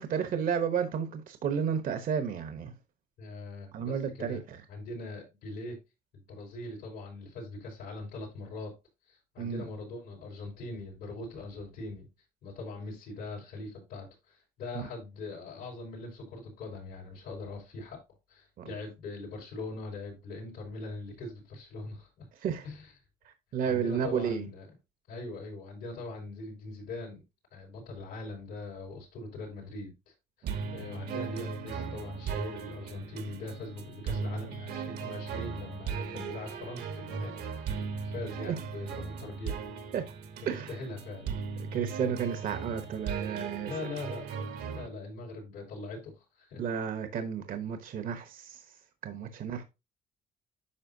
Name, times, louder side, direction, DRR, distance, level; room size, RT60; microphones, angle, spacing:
voice 1, 0.0-2.7 3.7-4.6 9.4-9.6 18.6-18.7 22.4-22.6 23.2-24.4 30.4-30.7 38.4-38.6 39.9-40.0 40.5-40.8 41.7-43.7 46.6-48.6 49.0-49.6, right 7 dB, 55° right, 1.0 m, -32 dB
voice 2, 3.2-4.4 4.7-5.8 6.1-8.7 9.0-12.1 12.4-18.0 18.3-22.3 22.6-22.9 23.6-24.7 25.1-27.2 27.5-39.7 40.4-41.4 43.7-44.3 44.7-46.6, left 2 dB, 85° left, 4.3 m, -41 dB
sound 1, 30.5-44.9, right 5 dB, 70° right, 1.2 m, -37 dB
9.8 x 5.5 x 2.7 m
cardioid pair, 110°, 17 cm